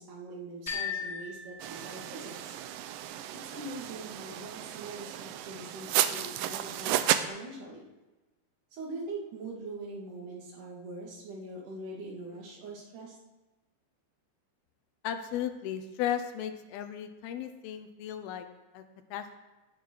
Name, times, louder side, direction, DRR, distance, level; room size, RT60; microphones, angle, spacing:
voice 1, 0.0-2.5 3.4-7.9 8.7-13.2, right 2 dB, 55° right, -3 dB, 4.0 m, -43 dB
sound 1, 0.7-2.6, left 6 dB, 15° left, 3.4 m, -38 dB
sound 2, 1.6-7.2, right 12 dB, 80° right, 2.0 m, -33 dB
voice 2, 15.0-18.5 18.7-18.8 19.1-19.4, left 10 dB, 80° left, 8 dB, 2.7 m, -35 dB
17.0 x 8.7 x 4.8 m, 1.1 s
omnidirectional pair, 4.5 m